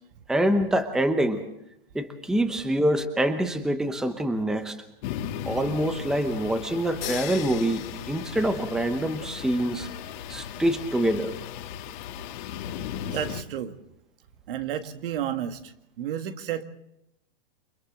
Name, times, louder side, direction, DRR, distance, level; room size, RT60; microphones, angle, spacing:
voice 1, 0.3-1.4 1.9-4.8 5.4-7.8 8.1-9.9 10.3-11.3, right 1 dB, ahead, 9 dB, 0.9 m, -25 dB
sound 1, 5.0-13.4, left 9 dB, 50° left, 2.0 m, -37 dB
sound 2, 7.0-9.1, left 11 dB, 80° left, 3.3 m, -39 dB
voice 2, 13.1-13.8 14.5-16.6, right 10 dB, 60° right, 8 dB, 1.8 m, -32 dB
29.0 x 24.0 x 3.8 m, 0.81 s
hypercardioid pair, 145°, 30 cm